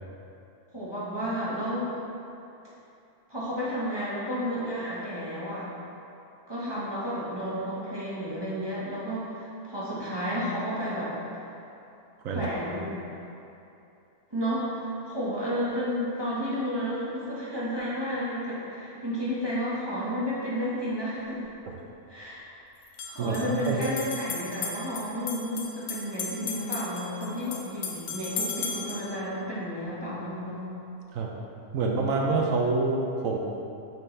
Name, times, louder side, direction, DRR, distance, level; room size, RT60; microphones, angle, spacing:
voice 1, 0.7-1.9 3.3-5.7 6.5-11.1 12.3-13.0 14.3-21.5 22.1-22.4 23.1-30.6, equal, 20° right, -9 dB, 1.2 m, -32 dB
sound 1, 21.2-21.3 22.8-29.1, left 5 dB, 80° left, 1.2 m, -36 dB
voice 2, 23.2-23.8 31.1-31.3 31.7-33.4, right 3 dB, 70° right, -1 dB, 1.0 m, -26 dB
6.6 x 6.2 x 3.3 m, 2.8 s
omnidirectional pair, 1.6 m